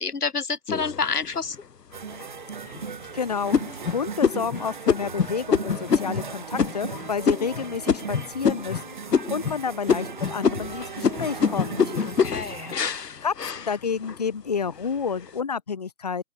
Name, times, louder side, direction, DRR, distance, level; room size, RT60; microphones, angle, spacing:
voice 1, 0.0-1.6 12.0-12.7, left 5 dB, 75° left, 1.8 m, -28 dB
sound 1, 0.7-1.5 2.1-2.2 2.7-3.1 3.5-8.8 9.1-9.6 9.9-14.2 14.7-15.2, left 6 dB, 90° left, 0.9 m, -26 dB
sound 2, 1.9-12.7, right 6 dB, 30° right, 4.9 m, -37 dB
voice 2, 3.1-11.9 13.2-16.2, left 6 dB, 25° left, 2.3 m, -30 dB
open air
figure-of-eight pair, 170°, 47 cm